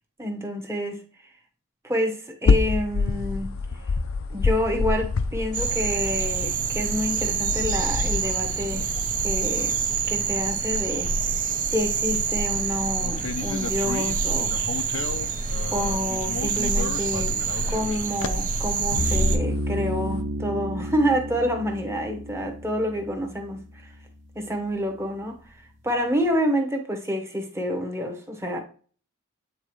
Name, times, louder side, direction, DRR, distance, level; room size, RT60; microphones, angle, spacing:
voice 1, 0.2-1.0 1.8-3.5 4.3-8.9 9.2-11.1 11.7-14.5 15.7-17.4 17.7-23.6 24.3-25.4 25.8-28.6, equal, 10° right, 1.1 m, -28 dB
sound 1, 2.4-20.2, left 4 dB, 65° left, 0.5 m, -30 dB
sound 2, 5.5-19.4, right 5 dB, 35° right, 0.7 m, -26 dB
sound 3, 18.9-24.0, equal, 55° right, 1.0 m, -31 dB
8.8 x 4.0 x 3.1 m
head